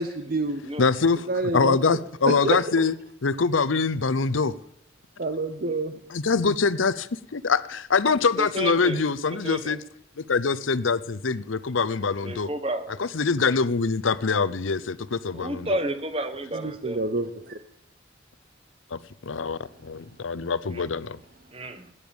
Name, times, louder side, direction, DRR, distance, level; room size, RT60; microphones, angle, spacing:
voice 1, 0.0-0.6 1.3-2.0 2.3-2.6 5.2-5.9 16.5-17.6, right 2 dB, 50° right, 9 dB, 0.8 m, -28 dB
voice 2, 0.8-1.3 1.5-2.9 3.2-4.5 6.1-9.8 10.2-12.5 13.0-15.8 18.9-19.0 19.3-21.2, left 4 dB, 90° left, 16 dB, 0.7 m, -24 dB
voice 3, 8.4-9.0 9.4-9.8 12.2-13.0 15.3-17.0 20.7-20.8 21.5-21.9, right 1 dB, 30° right, 9 dB, 1.2 m, -31 dB
17.0 x 10.0 x 7.1 m, 0.73 s
head